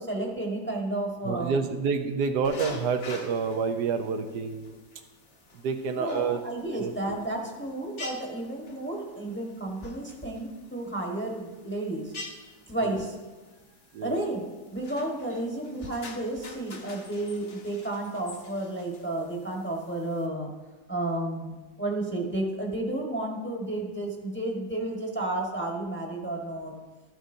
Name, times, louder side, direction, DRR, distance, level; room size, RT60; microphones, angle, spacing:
voice 1, 0.0-1.6 5.9-12.1 12.7-13.2 14.0-14.4 14.7-20.5 20.9-26.8, right 1 dB, 10° left, -1 dB, 1.1 m, -32 dB
voice 2, 1.2-4.8 5.6-6.4 6.8-7.2 12.8-13.0 13.9-14.1, right 5 dB, 75° right, 6 dB, 1.3 m, -28 dB
sound 1, 2.4-20.3, left 3 dB, 50° left, 1.2 m, -47 dB
12.5 x 9.1 x 2.7 m, 1.2 s
omnidirectional pair, 1.8 m